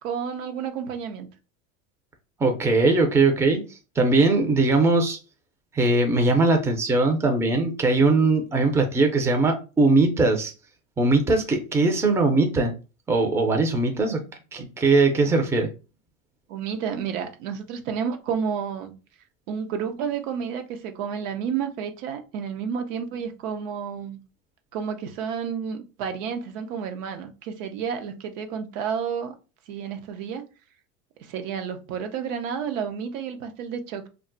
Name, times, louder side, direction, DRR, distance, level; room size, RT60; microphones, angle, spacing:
voice 1, 0.0-1.3 15.3-15.4 16.5-18.9 19.5-24.2 24.7-29.4 29.7-30.5 31.2-34.1, right 7 dB, 75° right, 6 dB, 0.7 m, -31 dB
voice 2, 2.4-5.2 5.7-10.5 11.0-12.7 13.1-14.2 14.5-15.7, right 3 dB, 5° right, 3 dB, 0.5 m, -20 dB
2.3 x 2.1 x 3.7 m, 0.32 s
supercardioid pair, 105°, 39 cm